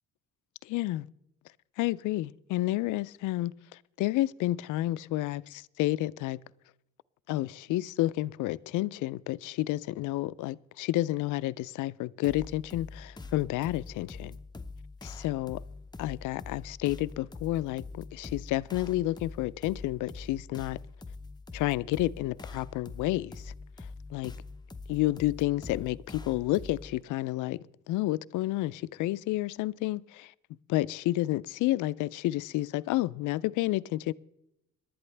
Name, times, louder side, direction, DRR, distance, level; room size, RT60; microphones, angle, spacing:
voice 1, 0.6-1.1 1.8-3.5 4.0-6.4 7.3-14.4 15.0-15.6 16.0-20.8 21.5-23.5 24.1-24.3 24.9-30.3 30.7-34.1, left 16 dB, 85° left, 0.4 m, -30 dB
sound 1, 12.2-27.0, left 3 dB, 15° left, 0.7 m, -44 dB
19.0 x 11.5 x 3.3 m
cardioid pair, 90°, 30 cm